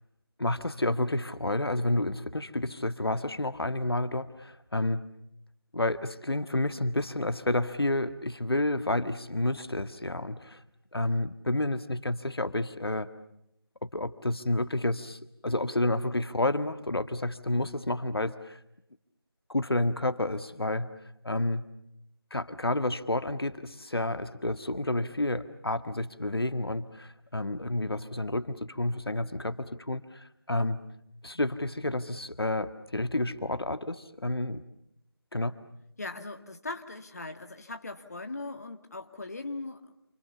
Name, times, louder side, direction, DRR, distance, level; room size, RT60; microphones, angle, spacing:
voice 1, 0.4-5.0 5.7-10.6 10.9-13.1 13.9-18.6 19.5-20.9 21.2-21.6 22.3-30.8 31.2-34.6 35.3-35.6, left 1 dB, 70° left, 11 dB, 1.8 m, -30 dB
voice 2, 36.0-39.9, left 2 dB, 40° left, 6 dB, 1.9 m, -39 dB
29.0 x 28.0 x 7.1 m, 0.78 s
figure-of-eight pair, 170°, 13 cm